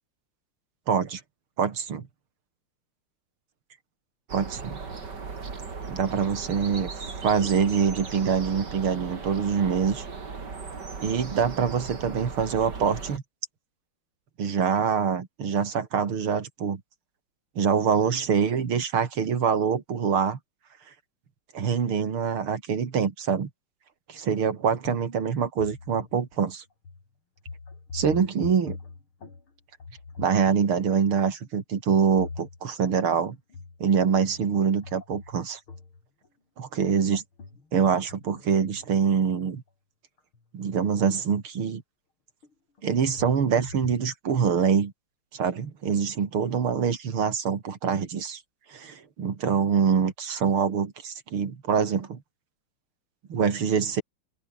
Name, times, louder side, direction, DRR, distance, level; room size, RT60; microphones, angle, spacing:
voice 1, 0.9-1.2 1.6-2.1 4.3-4.8 5.9-6.9 7.2-10.1 11.0-13.2 14.4-16.8 17.6-20.4 21.5-23.5 24.1-26.6 27.9-28.8 30.2-33.4 33.8-35.6 36.6-37.2 37.7-39.6 40.5-41.8 42.8-44.9 45.3-48.4 48.7-52.2 53.3-54.0, right 6 dB, 80° right, 3.2 m, -25 dB
sound 1, 4.3-13.2, right 4 dB, 55° right, 3.5 m, -37 dB
sound 2, 24.4-24.6 24.8-26.4 26.8-27.0 27.4-29.5 29.8-31.3 31.9-33.0 33.5-33.9 34.2-36.3 36.9-39.5 40.3-40.4 40.9-41.0 42.4-44.1, left 4 dB, 80° left, 5.2 m, -43 dB
open air
omnidirectional pair, 2.3 m